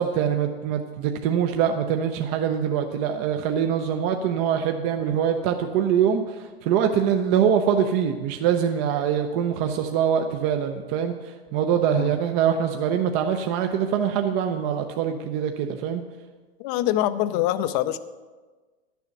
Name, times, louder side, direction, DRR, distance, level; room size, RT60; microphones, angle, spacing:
voice 1, 0.0-11.1 11.5-16.0, right 8 dB, 40° right, 5 dB, 0.7 m, -23 dB
voice 2, 16.6-18.0, left 13 dB, 40° left, 13 dB, 0.6 m, -24 dB
11.0 x 7.0 x 5.9 m, 1.3 s
hypercardioid pair, 105°, 32 cm